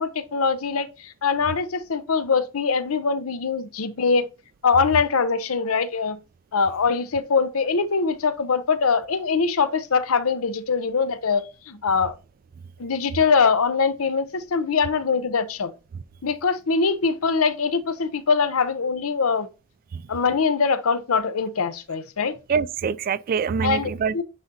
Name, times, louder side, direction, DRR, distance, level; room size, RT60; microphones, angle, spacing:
voice 1, 0.0-4.3 4.6-6.2 6.5-12.1 12.8-15.7 16.2-19.5 20.1-22.4 23.6-24.2, left 5 dB, 90° left, 0.7 m, -23 dB
voice 2, 22.5-24.2, right 6 dB, 45° right, 0.3 m, -25 dB
9.7 x 3.8 x 2.8 m
head